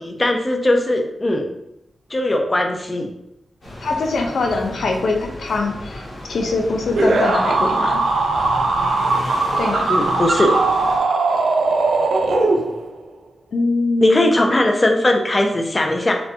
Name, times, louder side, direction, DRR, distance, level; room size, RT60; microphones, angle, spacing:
voice 1, 0.0-1.5 2.1-3.1 9.9-10.6 14.0-16.1, left 1 dB, 30° left, 3 dB, 0.5 m, -19 dB
sound 1, 3.6-11.0, left 1 dB, 50° left, 1.2 m, -34 dB
voice 2, 3.8-6.0 6.3-8.0 9.6-9.9 13.5-14.3, left 3 dB, 80° left, 2 dB, 0.4 m, -22 dB
sound 2, 7.0-13.0, right 3 dB, 85° right, 0.4 m, -19 dB
4.2 x 2.2 x 2.6 m, 0.82 s
cardioid pair, 80°, 0 cm